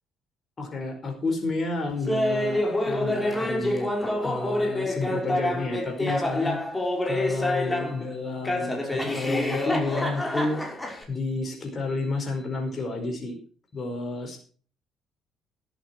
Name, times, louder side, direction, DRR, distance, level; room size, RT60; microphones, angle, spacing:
voice 1, 0.6-3.9 4.2-6.6 7.0-10.6 11.1-13.3 13.7-14.4, left 3 dB, 40° left, 4 dB, 4.9 m, -30 dB
Laughter, 2.1-8.0 8.4-11.0, left 1 dB, 15° left, 5.5 m, -27 dB
13.0 x 12.0 x 4.6 m, 0.41 s
hypercardioid pair, 50°, 0 cm